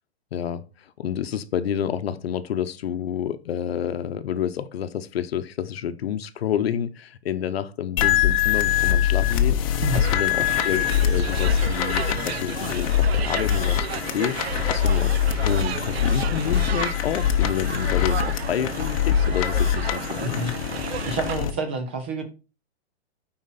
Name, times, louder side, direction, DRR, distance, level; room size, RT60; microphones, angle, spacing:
voice 1, 0.3-20.4, left 9 dB, 65° left, 0.8 m, -29 dB
sound 1, 8.0-21.5, left 9 dB, 30° left, 0.7 m, -23 dB
sound 2, 9.9-21.4, right 10 dB, 70° right, 0.6 m, -34 dB
voice 2, 20.2-20.7 21.1-22.2, right 2 dB, 10° right, 0.3 m, -29 dB
9.6 x 4.4 x 4.1 m
hypercardioid pair, 165°, 33 cm